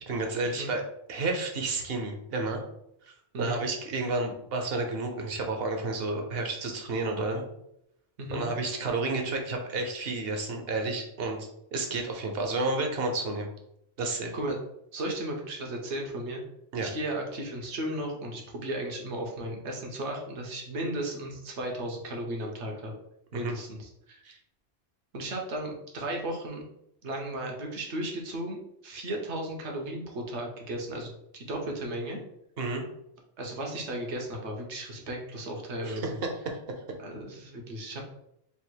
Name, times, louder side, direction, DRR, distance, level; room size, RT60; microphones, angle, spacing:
voice 1, 0.1-0.8 1.1-2.6 3.1-7.5 8.3-13.5 14.0-14.3 16.7-16.9 23.3-23.5 24.2-24.4 32.6-32.8 35.8-36.0 36.4-36.6, right 3 dB, 60° right, 3 dB, 0.9 m, -31 dB
voice 2, 14.1-14.6 14.9-16.4 16.8-22.9 23.3-24.2 25.1-26.6 27.0-32.2 33.4-36.2 37.0-38.0, right 1 dB, 80° right, 1 dB, 1.2 m, -35 dB
3.4 x 2.5 x 4.5 m, 0.78 s
omnidirectional pair, 1.2 m